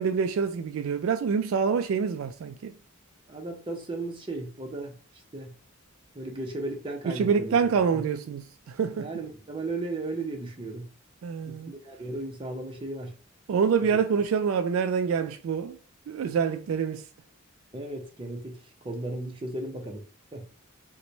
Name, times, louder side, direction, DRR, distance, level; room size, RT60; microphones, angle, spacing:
voice 1, 0.0-2.7 7.1-9.1 11.2-11.7 13.5-15.8 16.1-17.0, right 6 dB, 70° right, 0.3 m, -26 dB
voice 2, 3.3-5.0 5.3-5.5 6.1-7.5 7.9-8.0 9.0-10.9 11.5-13.1 17.7-20.0 20.3-20.5, right 2 dB, 25° right, 0.6 m, -35 dB
3.0 x 2.2 x 3.9 m
head